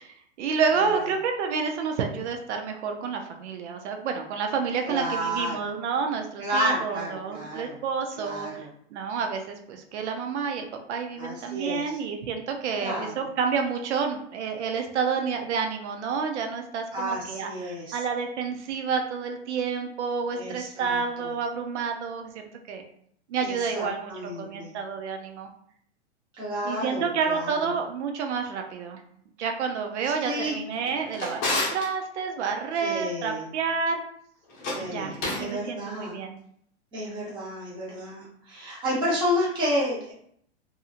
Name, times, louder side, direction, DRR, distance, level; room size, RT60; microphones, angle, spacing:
voice 1, 0.0-22.8 23.3-25.5 26.6-29.0 29.4-34.0 34.8-36.4, right 5 dB, 75° right, 4 dB, 0.5 m, -29 dB
voice 2, 4.8-5.6 6.4-7.8 8.1-8.7 11.2-11.9 12.8-13.1 16.9-18.0 20.3-21.3 23.4-24.7 26.3-27.7 30.0-30.6 32.8-33.5 34.7-36.1 36.9-40.1, equal, 15° right, -7 dB, 0.8 m, -31 dB
Drawer open or close, 30.7-31.9 34.5-35.5, left 2 dB, 30° left, 0.7 m, -30 dB
2.7 x 2.6 x 2.4 m, 0.67 s
supercardioid pair, 160°, 35 cm